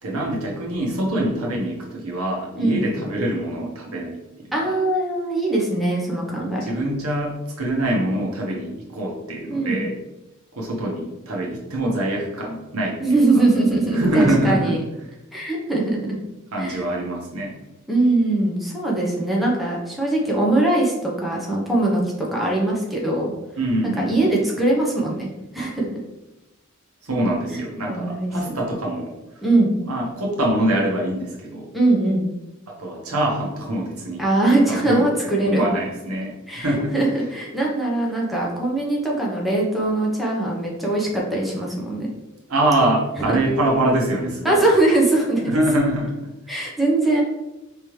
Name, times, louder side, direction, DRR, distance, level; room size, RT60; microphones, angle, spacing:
voice 1, 0.0-4.5 6.6-9.9 10.5-13.4 13.9-14.8 16.5-17.6 23.6-24.4 27.0-29.1 29.8-31.7 32.7-34.2 34.7-35.1 35.4-36.9 42.5-44.6 45.4-46.3, right 1 dB, 85° right, -1 dB, 1.2 m, -24 dB
voice 2, 2.5-2.9 4.5-6.6 9.5-9.8 13.0-14.8 15.3-16.1 16.6-16.8 17.9-23.3 23.8-25.3 25.5-25.9 27.5-28.6 29.4-29.7 31.7-32.3 34.2-35.6 36.5-42.1 44.4-45.5 46.5-47.2, right 2 dB, ahead, -4 dB, 0.8 m, -21 dB
4.7 x 3.5 x 3.1 m, 1.0 s
head